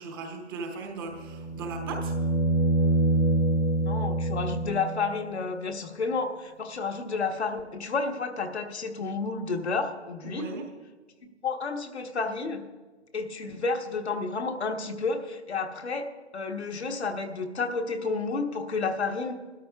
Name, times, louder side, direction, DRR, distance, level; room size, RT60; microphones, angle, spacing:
voice 1, 0.0-2.1 10.2-10.6, right 3 dB, 20° right, 2 dB, 1.0 m, -37 dB
sound 1, 1.1-5.2 7.6-7.7, right 2 dB, 85° left, 2.3 m, -26 dB
voice 2, 3.8-10.5 11.4-12.6 13.1-16.1 16.3-19.4, left 4 dB, 70° left, 4 dB, 1.3 m, -31 dB
20.0 x 13.0 x 2.4 m, 1.3 s
figure-of-eight pair, 150°, 34 cm